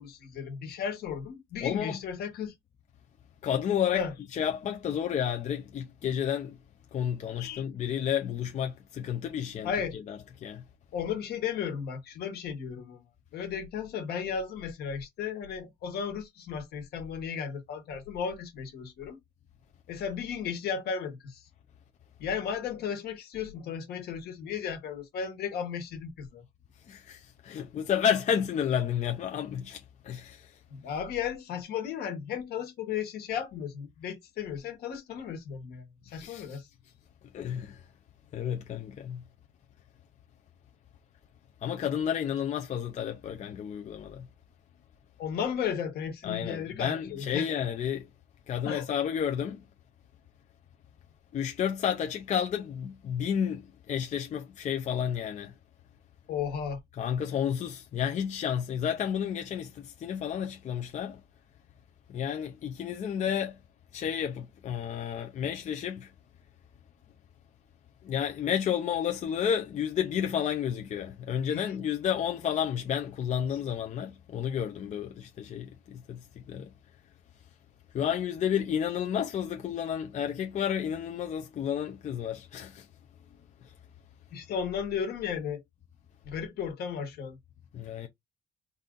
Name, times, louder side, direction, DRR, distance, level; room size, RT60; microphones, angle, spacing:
voice 1, 0.0-2.5 3.9-4.1 7.4-7.6 9.6-10.0 10.9-13.1 13.3-19.2 19.9-21.4 22.2-26.4 30.7-36.7 45.2-47.6 48.6-48.9 56.3-56.8 71.5-71.6 73.5-73.6 84.3-85.6 86.2-87.4, left 7 dB, 70° left, 1.4 m, -35 dB
voice 2, 1.6-2.0 3.4-4.0 4.3-6.6 6.9-9.7 10.1-10.2 10.4-10.6 26.9-30.6 36.1-36.6 37.3-37.8 38.3-39.2 41.6-44.3 46.2-48.1 48.5-49.6 51.3-55.5 57.0-61.2 62.1-63.6 63.9-66.1 68.0-76.7 77.9-82.9 87.7-88.1, left 8 dB, 45° left, 0.6 m, -31 dB
4.1 x 2.5 x 3.7 m
cardioid pair, 110°, 17 cm